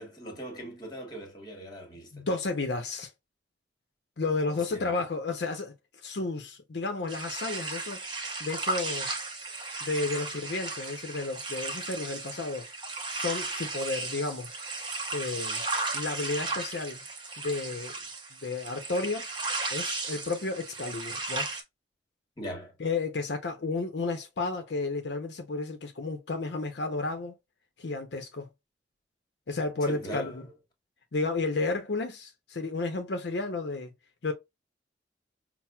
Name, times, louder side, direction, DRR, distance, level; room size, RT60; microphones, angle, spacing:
voice 1, 0.0-2.2 4.5-5.0 22.4-22.8 29.8-30.5, right 1 dB, 25° left, 1.2 m, -40 dB
voice 2, 2.1-3.1 4.2-5.7 6.0-8.1 8.4-9.2 9.8-12.7 13.1-14.5 15.1-15.6 15.9-17.0 17.4-17.9 18.4-19.3 19.7-21.5 22.8-27.3 27.8-28.5 29.5-30.4 31.1-33.9 34.2-34.3, left 3 dB, 70° left, 0.6 m, -32 dB
sound 1, 7.1-21.6, right 3 dB, 25° right, 0.6 m, -35 dB
5.7 x 2.0 x 2.2 m
head